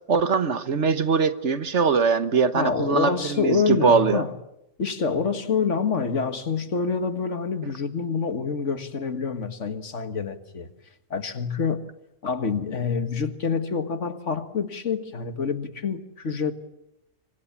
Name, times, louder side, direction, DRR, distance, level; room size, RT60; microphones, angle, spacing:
voice 1, 0.1-4.2, right 5 dB, 60° right, 1.5 m, -22 dB
voice 2, 2.5-4.4 4.8-10.7 11.1-11.9 12.2-16.5, left 5 dB, 65° left, 1.9 m, -27 dB
26.5 x 25.5 x 7.3 m
omnidirectional pair, 1.4 m